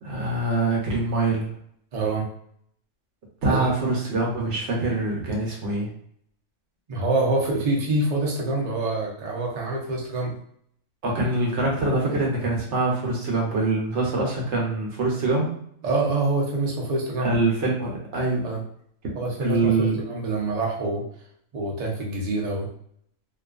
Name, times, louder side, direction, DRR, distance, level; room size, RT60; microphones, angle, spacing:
voice 1, 0.0-1.5 3.4-5.9 11.0-15.5 17.2-18.5 19.4-20.0, right 2 dB, 65° right, -2 dB, 1.0 m, -24 dB
voice 2, 1.9-2.3 3.5-3.7 6.9-10.3 15.8-17.4 18.4-18.6 19.1-21.1 21.5-22.7, right 2 dB, 45° right, -2 dB, 0.5 m, -26 dB
2.5 x 2.3 x 2.4 m, 0.66 s
omnidirectional pair, 1.4 m